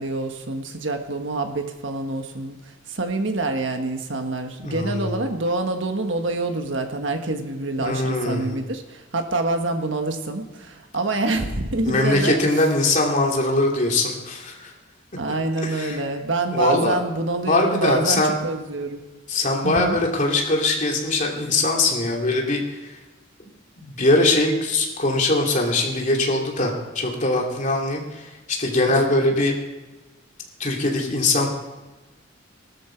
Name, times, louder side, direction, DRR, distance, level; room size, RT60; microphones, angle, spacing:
voice 1, 0.0-12.4 15.2-19.0 19.6-20.0 29.1-29.4, right 2 dB, 70° right, 5 dB, 1.5 m, -26 dB
voice 2, 4.6-5.1 7.8-8.5 11.8-14.7 15.6-16.0 16.5-17.0 17.5-18.3 19.3-22.9 23.4-23.5 23.8-29.5 30.6-31.5, left 2 dB, 40° left, 0 dB, 2.8 m, -22 dB
19.0 x 13.0 x 4.6 m, 1.2 s
head